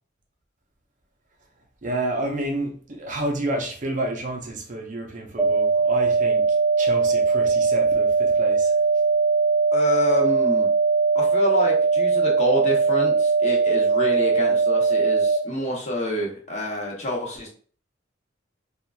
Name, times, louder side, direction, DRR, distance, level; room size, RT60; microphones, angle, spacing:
voice 1, 1.8-8.8, right 1 dB, 40° right, 0.6 m, -30 dB
sound 1, 5.4-15.4, right 5 dB, ahead, 0.3 m, -20 dB
voice 2, 9.7-10.7 11.1-17.5, left 1 dB, 35° left, 0.8 m, -27 dB
2.8 x 2.4 x 2.3 m
head